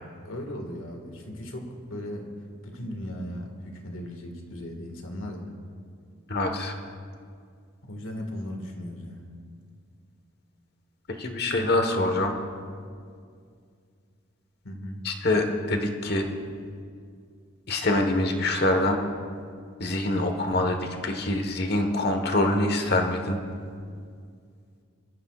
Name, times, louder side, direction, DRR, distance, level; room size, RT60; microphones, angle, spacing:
voice 1, 0.2-2.3 2.6-5.5 7.8-9.3 14.6-15.0, left 1 dB, 80° left, 3 dB, 1.9 m, -37 dB
voice 2, 6.3-6.7 11.2-12.3 15.0-16.3 17.7-19.0 19.8-23.4, left 1 dB, 50° left, 4 dB, 1.3 m, -25 dB
23.0 x 14.5 x 2.4 m, 2.2 s
head